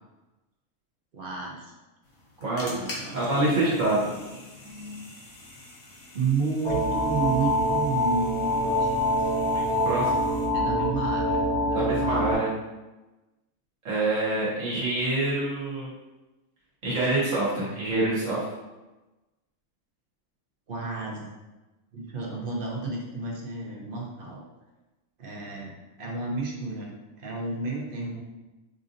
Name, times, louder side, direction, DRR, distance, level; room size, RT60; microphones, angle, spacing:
voice 1, 1.1-1.7 2.8-3.2 6.1-8.3 8.6-8.9 10.5-12.2 20.7-21.3 21.9-24.4 25.2-25.7 26.0-26.9 27.2-28.2, right 4 dB, 45° right, -2 dB, 0.8 m, -31 dB
sound 1, 2.0-10.5, left 2 dB, 75° left, 1.4 m, -45 dB
voice 2, 2.4-4.2 9.8-10.1 11.7-12.5 13.8-15.9 16.8-18.5, right 2 dB, 70° right, -6 dB, 1.4 m, -26 dB
sound 2, 6.6-12.3, equal, ahead, 0.9 m, -25 dB
5.1 x 2.7 x 2.5 m, 1.1 s
omnidirectional pair, 1.5 m